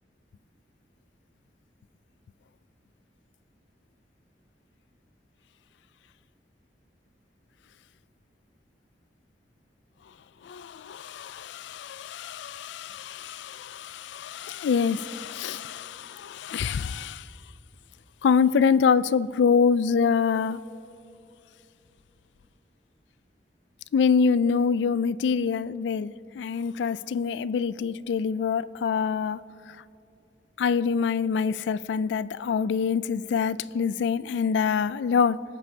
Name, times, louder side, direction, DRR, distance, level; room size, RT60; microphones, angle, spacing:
voice 1, 10.4-17.2 18.2-20.6 23.9-29.4 30.6-35.4, left 6 dB, 80° left, 0.3 m, -25 dB
23.0 x 9.1 x 2.8 m
head